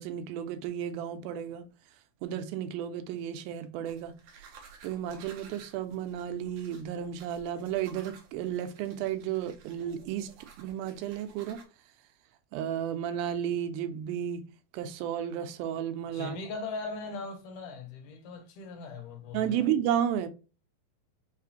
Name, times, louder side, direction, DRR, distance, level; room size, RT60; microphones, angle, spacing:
voice 1, 0.0-1.7 2.2-4.5 4.8-11.6 12.5-14.5 14.7-16.4 19.3-20.3, right 10 dB, 90° right, 2.4 m, -33 dB
sound 1, 3.9-11.7, right 6 dB, 70° right, 1.9 m, -54 dB
voice 2, 16.1-19.7, left 4 dB, 70° left, 2.1 m, -39 dB
5.7 x 2.5 x 2.7 m
omnidirectional pair, 4.1 m